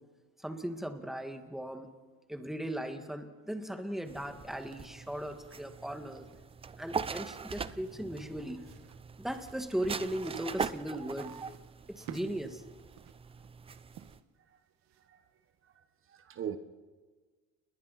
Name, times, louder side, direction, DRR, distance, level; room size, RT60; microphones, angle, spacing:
voice 1, 0.4-1.9 2.3-6.3 6.8-8.7 9.2-11.4 11.9-12.6, right 1 dB, ahead, 6 dB, 1.9 m, -37 dB
sound 1, 4.1-14.2, right 5 dB, 20° right, 0.6 m, -42 dB
sound 2, 4.5-15.3, right 10 dB, 65° right, 1.5 m, -55 dB
voice 2, 15.0-15.3 15.6-16.6, right 9 dB, 45° right, 9 dB, 1.3 m, -42 dB
30.0 x 21.0 x 4.3 m, 1.4 s
cardioid pair, 120°, 30 cm